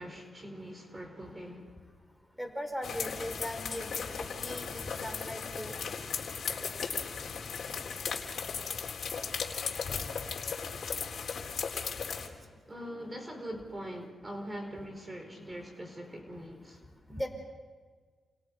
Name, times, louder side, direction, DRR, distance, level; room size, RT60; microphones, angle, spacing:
voice 1, 0.0-1.7 12.7-16.8, equal, 20° right, 5 dB, 4.6 m, -42 dB
voice 2, 2.4-5.7 12.2-12.3 17.1-17.3, equal, ahead, 5 dB, 4.8 m, -39 dB
sound 1, 2.8-12.3, left 6 dB, 65° left, 4.0 m, -36 dB
29.5 x 28.5 x 5.4 m, 1.5 s
cardioid pair, 80°, 0 cm